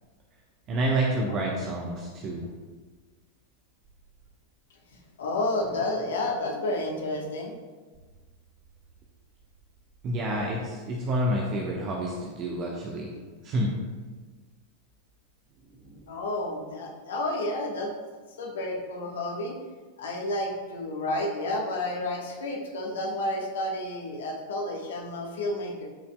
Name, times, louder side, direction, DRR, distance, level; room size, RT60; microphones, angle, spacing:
voice 1, 0.7-2.5 10.0-13.1 13.4-13.7 15.7-16.0, right 1 dB, 35° right, -2 dB, 1.0 m, -29 dB
voice 2, 5.2-7.5 16.1-17.9 18.4-19.6 20.0-25.9, left 1 dB, 60° left, 2 dB, 1.3 m, -30 dB
13.0 x 5.7 x 2.2 m, 1.4 s
figure-of-eight pair, 90°, 0 cm